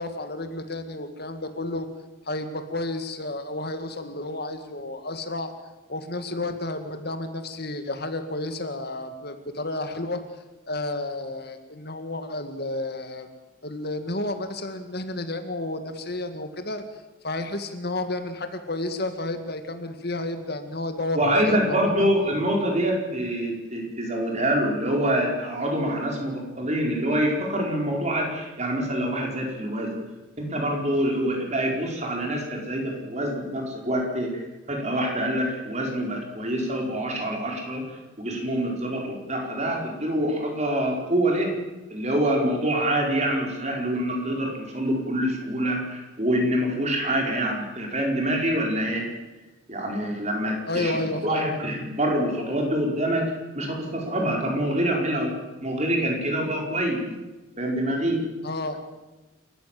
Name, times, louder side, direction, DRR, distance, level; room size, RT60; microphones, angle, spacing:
voice 1, 0.0-1.9 2.3-5.5 5.9-10.2 10.7-13.3 13.6-16.8 17.2-22.1 50.7-51.4 58.4-58.8, left 2 dB, 50° left, 8 dB, 2.0 m, -31 dB
voice 2, 21.1-29.9 30.4-41.5 41.9-49.0 49.7-55.3 55.6-57.0 57.6-58.2, right 1 dB, 35° right, 0 dB, 5.0 m, -26 dB
28.5 x 14.5 x 7.7 m, 1.1 s
head